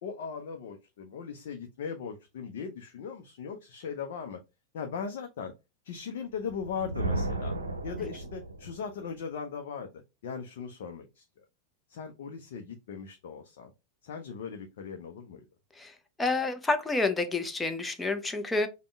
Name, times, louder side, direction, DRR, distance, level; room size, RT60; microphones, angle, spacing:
voice 1, 0.0-4.4 4.7-5.5 5.8-7.6 7.8-9.9 10.2-11.4 11.9-13.7 14.0-15.4, left 6 dB, 55° left, 4 dB, 0.6 m, -39 dB
Thunder, 6.5-8.9, right 2 dB, 80° right, 0.7 m, -34 dB
voice 2, 15.8-18.7, left 3 dB, 10° left, 7 dB, 0.6 m, -29 dB
5.2 x 2.2 x 3.5 m, 0.26 s
figure-of-eight pair, 90°, 0 cm